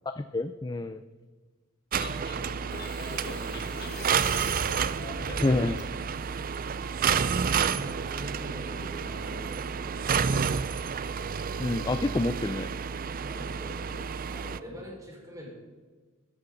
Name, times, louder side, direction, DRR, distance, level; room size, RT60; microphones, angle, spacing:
voice 1, 0.1-1.0 5.4-5.8 11.6-12.7, left 2 dB, 20° left, 10 dB, 0.4 m, -28 dB
sound 1, 1.9-5.9, left 3 dB, 50° left, 1.6 m, -41 dB
sound 2, 1.9-14.6, right 6 dB, 45° right, 0.5 m, -30 dB
voice 2, 2.2-5.3 7.5-10.8 13.2-15.5, equal, 15° right, -3 dB, 5.0 m, -45 dB
15.5 x 14.0 x 4.0 m, 1.4 s
head